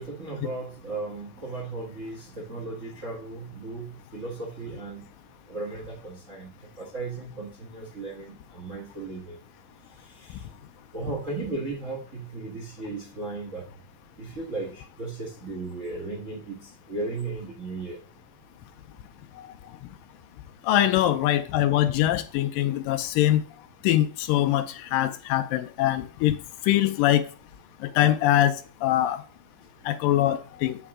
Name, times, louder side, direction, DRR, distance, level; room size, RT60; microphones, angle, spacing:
voice 1, 0.0-5.0 5.5-9.4 10.0-10.5 10.9-13.6 14.2-18.0, right 3 dB, 90° right, 0.6 m, -36 dB
voice 2, 20.7-23.4 23.8-24.7 24.9-26.4 26.7-27.2 28.0-28.5 28.8-29.2 29.9-30.8, left 13 dB, 80° left, 2.2 m, -22 dB
8.2 x 5.6 x 3.7 m
omnidirectional pair, 4.1 m